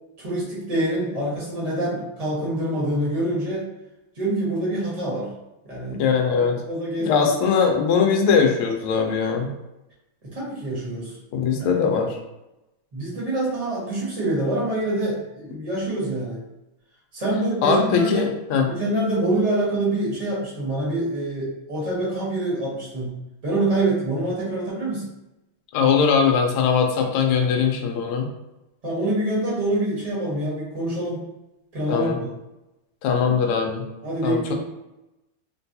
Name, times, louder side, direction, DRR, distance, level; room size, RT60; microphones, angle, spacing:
voice 1, 0.2-3.7 4.2-5.3 5.6-6.1 6.3-7.5 10.2-11.2 11.6-11.8 12.9-16.4 17.1-18.3 18.7-23.1 23.4-25.1 28.8-31.2 31.7-32.3 34.0-34.5, right 1 dB, 25° right, -6 dB, 0.9 m, -26 dB
voice 2, 6.0-6.6 7.0-9.5 11.3-12.2 17.6-18.7 25.7-28.3 31.9-32.2 33.0-33.8 34.2-34.5, left 6 dB, 80° left, 2 dB, 1.5 m, -20 dB
3.9 x 2.2 x 2.7 m, 0.96 s
omnidirectional pair, 2.4 m